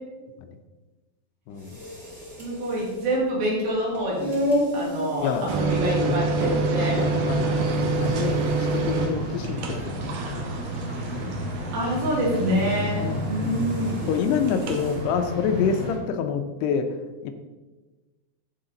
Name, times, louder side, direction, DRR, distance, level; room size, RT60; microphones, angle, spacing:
voice 1, 1.5-1.8 5.2-5.5 6.0-6.4 6.7-7.7 8.0-10.2 11.1-11.3 12.4-12.7 13.0-13.7 14.1-17.0 17.2-17.3, left 6 dB, 80° left, 7 dB, 2.7 m, -28 dB
sound 1, 1.5-15.1, left 1 dB, 25° right, 1.3 m, -34 dB
voice 2, 2.4-4.4 4.7-7.1 11.7-14.1, right 1 dB, 90° right, -4 dB, 4.8 m, -27 dB
sound 2, 5.5-13.1 14.5-14.8, right 3 dB, 70° right, 2.3 m, -27 dB
sound 3, 7.0-16.0, right 1 dB, 50° right, 1.4 m, -32 dB
13.5 x 4.9 x 3.9 m, 1.2 s
omnidirectional pair, 4.9 m